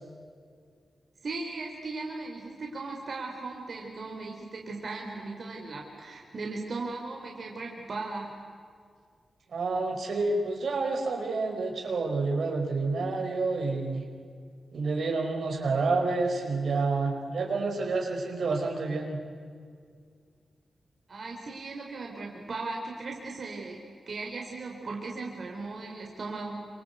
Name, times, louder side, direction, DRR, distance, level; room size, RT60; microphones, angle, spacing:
voice 1, 1.2-8.3 21.1-23.8 24.1-26.7, right 3 dB, 55° right, 0 dB, 4.1 m, -37 dB
voice 2, 9.5-14.1 14.7-19.2, right 3 dB, 75° right, 2 dB, 5.0 m, -29 dB
27.0 x 26.5 x 8.2 m, 2.1 s
cardioid pair, 70°, 0 cm